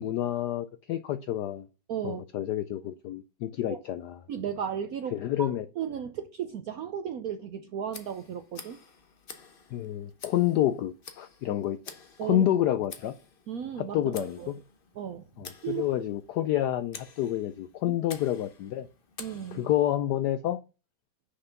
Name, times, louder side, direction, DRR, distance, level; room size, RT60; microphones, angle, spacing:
voice 1, 0.0-1.7 2.0-4.2 5.1-5.7 9.7-11.8 12.2-13.1 13.8-14.6 15.4-18.9 19.5-20.6, left 12 dB, 75° left, 0.9 m, -28 dB
voice 2, 1.9-2.2 3.7-3.8 4.3-5.5 5.8-8.8 12.2-12.4 13.5-14.5 15.0-15.2 15.6-15.8 17.9-18.0 19.2-19.6, right 8 dB, 70° right, 0.8 m, -35 dB
Tick, 7.9-19.9, left 5 dB, 40° left, 0.8 m, -49 dB
6.6 x 5.6 x 5.8 m
omnidirectional pair, 2.2 m